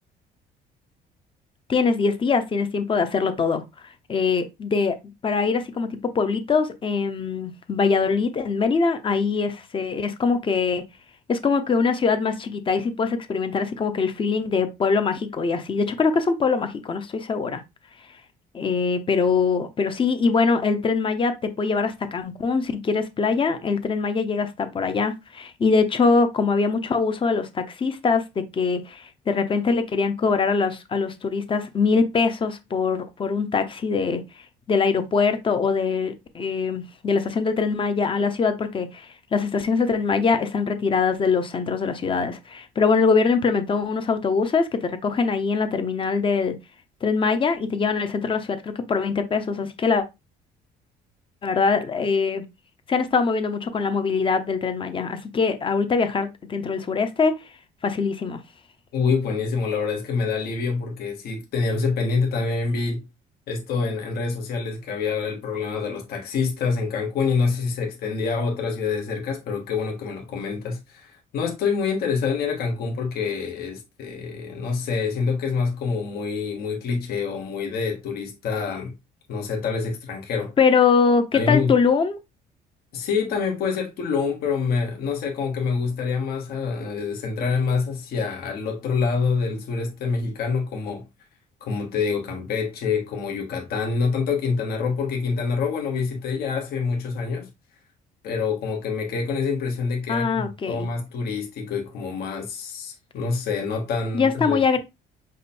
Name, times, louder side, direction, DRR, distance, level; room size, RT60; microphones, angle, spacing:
voice 1, 1.7-3.6 4.1-5.0 5.2-10.8 11.3-17.6 18.5-34.2 34.7-46.6 47.0-50.0 51.4-52.4 52.9-57.3 57.8-58.4 80.6-82.2 100.1-100.9 104.1-104.8, left 5 dB, 30° left, 0.7 m, -23 dB
voice 2, 58.9-63.0 63.5-78.9 79.3-80.5 81.3-81.8 82.9-91.0 91.6-97.5 98.2-104.6, left 5 dB, 65° left, 1.2 m, -26 dB
5.1 x 2.1 x 4.2 m
cardioid pair, 110°, 17 cm